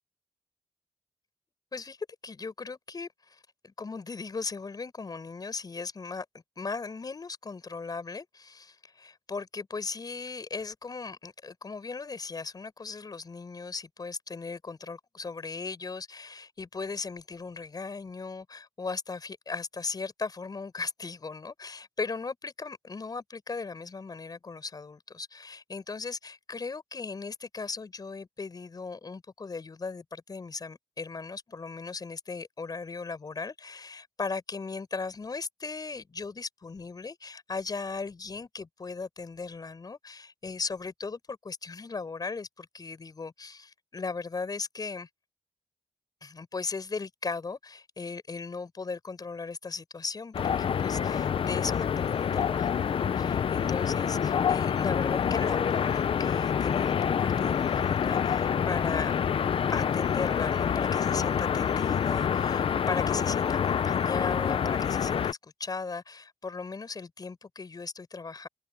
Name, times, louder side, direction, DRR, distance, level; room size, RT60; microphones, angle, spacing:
voice 1, 2.2-6.2 6.6-45.1 46.2-59.1 59.7-68.5, left 4 dB, 40° left, 6.4 m, -37 dB
sound 1, 50.3-65.3, left 7 dB, 60° left, 0.7 m, -27 dB
wide cardioid pair, 105°, 10 cm